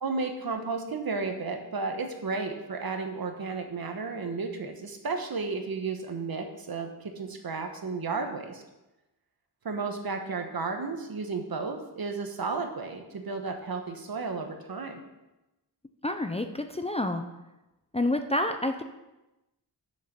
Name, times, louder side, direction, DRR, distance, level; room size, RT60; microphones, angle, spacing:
voice 1, 0.0-8.6 9.6-15.0, right 4 dB, 60° right, 5 dB, 1.3 m, -33 dB
voice 2, 16.0-17.2 17.9-18.8, left 1 dB, 15° left, 6 dB, 0.5 m, -28 dB
6.7 x 6.6 x 6.8 m, 0.99 s
wide cardioid pair, 110°, 41 cm